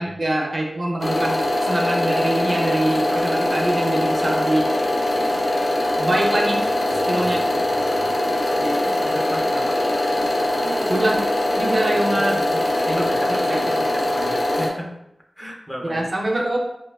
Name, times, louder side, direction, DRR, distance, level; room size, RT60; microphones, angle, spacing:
voice 1, 0.0-4.7 6.0-6.7 7.1-7.4 8.6-8.8 10.6-11.2 11.6-12.4 12.9-13.6 15.8-16.6, right 1 dB, 45° right, -1 dB, 0.4 m, -24 dB
sound 1, 1.0-14.7, left 1 dB, 65° left, 0.5 m, -22 dB
voice 2, 6.9-9.8 11.8-12.0 12.5-14.9 15.4-16.0, equal, 10° left, 0 dB, 0.4 m, -36 dB
2.9 x 2.2 x 2.3 m, 0.83 s
wide cardioid pair, 85°, 0 cm